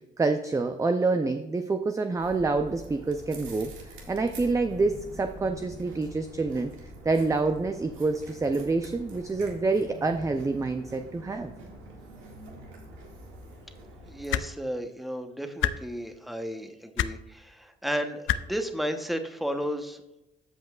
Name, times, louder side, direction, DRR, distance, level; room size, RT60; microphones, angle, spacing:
voice 1, 0.0-11.5, right 3 dB, 15° right, 7 dB, 0.5 m, -27 dB
sound 1, 2.2-14.3, equal, 90° right, 1.9 m, -45 dB
voice 2, 14.0-20.0, equal, ahead, 6 dB, 0.9 m, -33 dB
sound 2, 14.3-14.5 15.6-15.7 17.0-17.1 18.3-18.4 19.6-19.7, left 12 dB, 75° left, 0.4 m, -25 dB
13.5 x 5.3 x 2.4 m, 0.93 s
cardioid pair, 90°, 20 cm